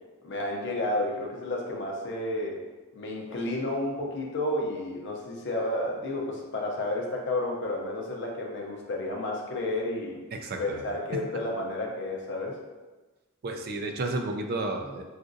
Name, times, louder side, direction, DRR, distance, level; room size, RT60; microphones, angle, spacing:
voice 1, 0.2-2.6 3.0-10.2 10.6-12.6, left 1 dB, 55° left, -1 dB, 0.6 m, -31 dB
voice 2, 10.3-10.8 13.4-15.0, right 2 dB, 45° right, 3 dB, 0.3 m, -32 dB
4.0 x 2.4 x 2.5 m, 1.2 s
head